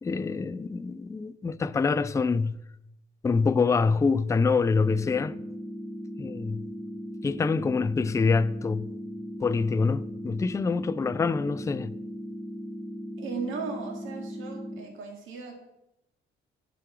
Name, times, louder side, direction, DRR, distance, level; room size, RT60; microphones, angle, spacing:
voice 1, 0.0-2.6 3.2-5.3 6.2-6.7 7.2-8.9 9.4-11.9, left 4 dB, 15° left, 0.3 m, -25 dB
sound 1, 4.8-14.8, equal, 35° right, 2.9 m, -38 dB
voice 2, 13.2-15.5, right 5 dB, 80° right, 1.8 m, -36 dB
10.0 x 5.1 x 5.8 m
cardioid pair, 90°, 20 cm